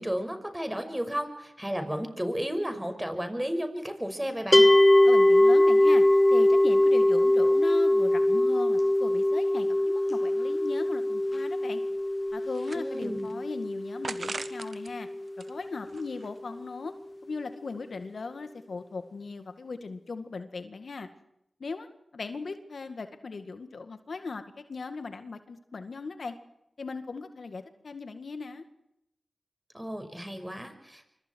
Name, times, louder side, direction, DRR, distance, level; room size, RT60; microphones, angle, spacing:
voice 1, 0.0-4.7 12.8-13.3 29.7-31.1, equal, 10° right, 7 dB, 5.8 m, -33 dB
sound 1, 4.5-15.7, left 1 dB, 25° left, 1.1 m, -22 dB
voice 2, 5.0-11.8 12.3-15.1 15.4-16.9 17.2-21.1 21.6-21.9 22.1-24.4 24.7-26.3 26.8-28.6, left 4 dB, 75° left, 9 dB, 2.0 m, -38 dB
sound 2, 10.9-11.0 11.3-11.4 12.0-13.3 14.0-14.9 15.3-16.5, right 3 dB, 65° right, 1.6 m, -40 dB
25.5 x 24.5 x 4.7 m, 0.81 s
cardioid pair, 40°, 0 cm